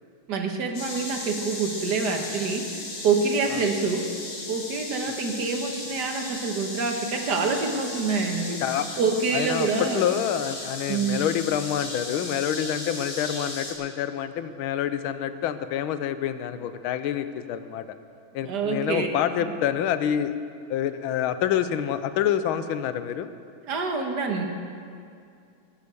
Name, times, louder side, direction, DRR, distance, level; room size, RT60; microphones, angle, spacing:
voice 1, 0.3-4.1 4.5-8.6 9.0-10.1 10.9-11.2 18.4-19.1 23.6-24.5, right 4 dB, 60° right, 3 dB, 1.8 m, -26 dB
sound 1, 0.7-13.7, left 2 dB, 70° left, 2.8 m, -36 dB
voice 2, 8.6-9.0 9.3-9.7 9.9-17.9 18.3-20.3 20.7-23.3, left 10 dB, 85° left, 11 dB, 1.5 m, -27 dB
17.0 x 8.3 x 6.8 m, 2.4 s
omnidirectional pair, 2.2 m